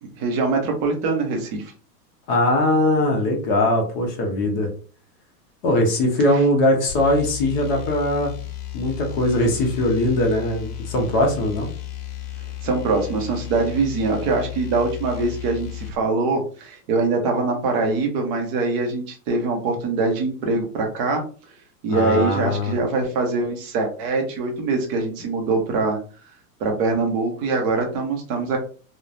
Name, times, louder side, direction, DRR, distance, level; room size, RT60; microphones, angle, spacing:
voice 1, 0.0-1.7 6.3-6.4 12.6-21.2 21.8-26.0 26.6-28.6, right 3 dB, 25° right, 2 dB, 0.5 m, -23 dB
voice 2, 2.3-4.7 5.6-8.3 8.7-11.7 21.9-22.7, left 1 dB, 35° left, 1 dB, 0.7 m, -20 dB
sound 1, 6.9-16.0, left 13 dB, 70° left, 0.8 m, -34 dB
3.1 x 2.0 x 2.5 m, 0.40 s
supercardioid pair, 145°, 48 cm